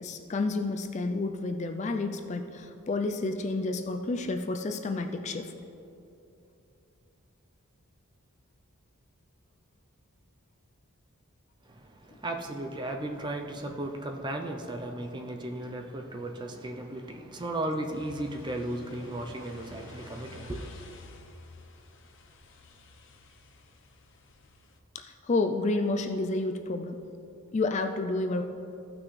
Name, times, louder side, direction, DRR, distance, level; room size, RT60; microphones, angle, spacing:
voice 1, 0.0-5.5 24.9-27.0 27.5-28.4, left 3 dB, 30° left, 6 dB, 0.3 m, -30 dB
voice 2, 11.7-20.7, right 1 dB, 20° right, 3 dB, 0.5 m, -35 dB
sound 1, 17.9-24.8, left 3 dB, 55° left, 0.8 m, -52 dB
15.5 x 6.0 x 3.2 m, 2.8 s
head